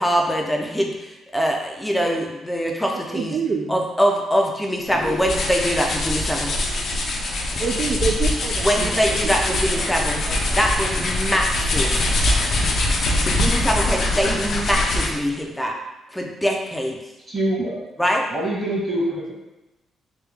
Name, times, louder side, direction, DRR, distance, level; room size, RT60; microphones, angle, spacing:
voice 1, 0.0-3.4 3.7-6.6 8.6-10.2 10.5-12.2 13.2-15.8 16.1-17.0 18.0-18.3, equal, 5° left, 1 dB, 0.5 m, -23 dB
voice 2, 3.1-3.8 6.9-7.0 7.3-10.4, right 5 dB, 50° right, 3 dB, 0.4 m, -28 dB
sound 1, 4.9-15.3, left 2 dB, 55° left, 0.6 m, -23 dB
sound 2, 5.8-14.2, right 1 dB, 85° right, 1.1 m, -36 dB
voice 3, 17.3-17.8 18.3-19.3, right 1 dB, 30° right, -5 dB, 1.4 m, -24 dB
3.3 x 2.3 x 3.4 m, 1.0 s
cardioid pair, 90°, 0 cm